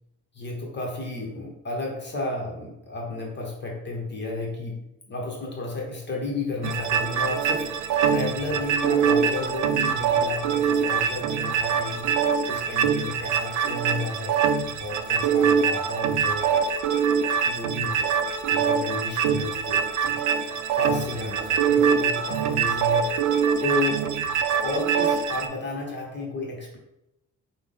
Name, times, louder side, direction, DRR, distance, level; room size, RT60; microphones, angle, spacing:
voice 1, 0.3-12.1 12.5-14.3 14.8-16.6 17.5-18.1 18.5-20.2 20.8-23.3 23.6-24.3 24.6-26.8, left 2 dB, 35° left, -1 dB, 1.0 m, -32 dB
sound 1, 6.6-25.5, right 7 dB, 75° right, 0.5 m, -24 dB
5.7 x 2.2 x 3.7 m, 0.87 s
cardioid pair, 90°, 30 cm